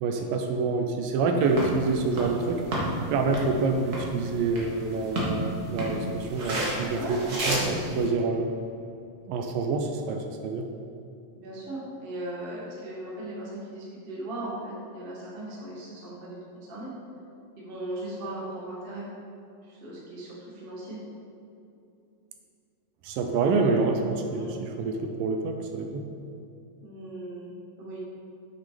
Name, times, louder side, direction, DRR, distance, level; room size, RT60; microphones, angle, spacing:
voice 1, 0.0-2.6 3.1-7.2 7.5-8.5 9.3-10.7 23.0-26.0, right 3 dB, 80° right, 4 dB, 2.3 m, -27 dB
sound 1, 1.4-8.1, right 1 dB, 60° right, 1.0 m, -32 dB
voice 2, 6.9-7.2 7.6-7.8 11.3-16.9 17.6-19.1 19.7-21.0 24.3-24.5 26.8-27.5 27.8-28.0, right 1 dB, 30° right, -6 dB, 1.0 m, -38 dB
7.8 x 6.1 x 5.0 m, 2.7 s
omnidirectional pair, 4.1 m